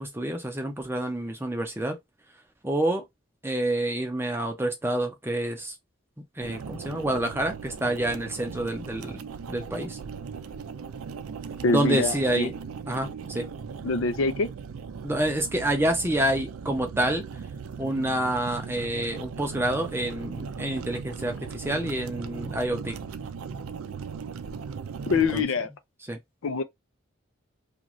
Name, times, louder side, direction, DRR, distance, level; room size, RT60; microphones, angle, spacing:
voice 1, 0.0-2.0 2.6-3.0 3.4-5.7 6.4-10.0 11.6-12.5 12.9-13.5 15.0-17.2 17.8-23.0 25.1-25.4 26.1-26.2, right 1 dB, 10° right, 0.6 m, -28 dB
sound 1, 6.4-25.4, right 5 dB, 90° right, 0.4 m, -38 dB
voice 2, 11.6-12.5 13.8-14.5 25.1-25.7 26.4-26.6, left 3 dB, 75° left, 0.5 m, -25 dB
2.6 x 2.4 x 3.0 m
head